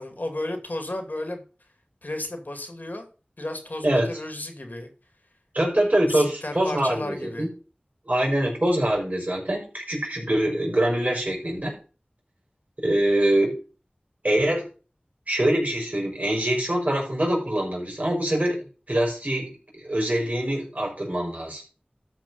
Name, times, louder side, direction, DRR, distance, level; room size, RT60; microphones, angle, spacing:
voice 1, 0.0-1.4 2.0-3.1 3.4-4.9 6.1-7.5, left 1 dB, 60° left, 5 dB, 2.3 m, -33 dB
voice 2, 5.5-7.5 8.1-11.7 12.8-13.6 14.2-14.7 15.3-21.6, right 1 dB, 50° right, -1 dB, 5.2 m, -24 dB
13.0 x 5.1 x 5.5 m, 0.36 s
wide cardioid pair, 40°, 3 cm